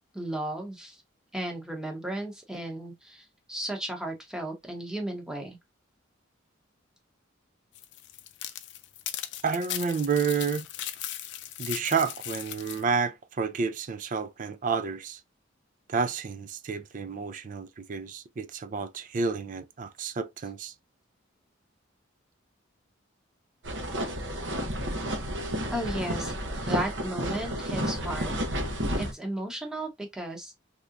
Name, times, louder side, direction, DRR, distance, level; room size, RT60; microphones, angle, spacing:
voice 1, 0.1-1.0 1.3-5.6 25.7-26.3 26.7-28.3 28.9-30.7, right 1 dB, 5° right, 0.8 m, -34 dB
sound 1, 7.7-12.8, left 12 dB, 60° left, 0.4 m, -38 dB
voice 2, 9.4-10.7 11.6-15.2 15.9-20.7, right 5 dB, 40° right, 0.4 m, -30 dB
sound 2, 23.6-29.1, equal, 70° right, 0.8 m, -31 dB
3.3 x 2.8 x 2.5 m
head